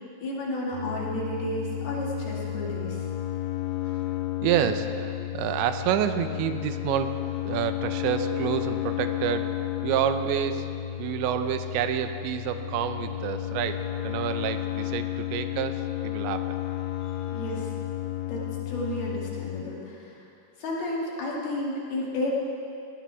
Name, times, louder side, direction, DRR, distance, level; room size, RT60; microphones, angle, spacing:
voice 1, 0.2-3.0 17.0-17.7 18.3-20.3 20.6-22.3, left 1 dB, 60° left, -5 dB, 4.2 m, -32 dB
sound 1, 0.7-19.6, left 14 dB, 80° left, 2.7 m, -32 dB
voice 2, 4.4-7.2 7.5-9.5 9.8-10.7 11.0-16.6, right 10 dB, 90° right, 9 dB, 3.0 m, -28 dB
19.0 x 18.0 x 3.6 m, 2.6 s
omnidirectional pair, 5.1 m